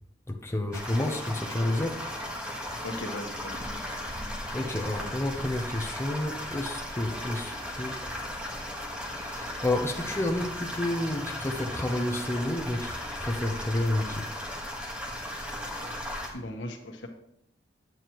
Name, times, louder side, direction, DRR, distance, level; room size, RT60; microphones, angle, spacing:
voice 1, 0.3-2.0 4.5-8.0 9.1-14.3, left 1 dB, 15° left, 2 dB, 0.8 m, -30 dB
sound 1, 0.7-16.3, left 1 dB, 5° right, 1.5 m, -36 dB
voice 2, 2.8-3.6 16.3-17.1, left 1 dB, 80° left, 4 dB, 1.3 m, -37 dB
9.3 x 8.5 x 3.1 m, 0.78 s
head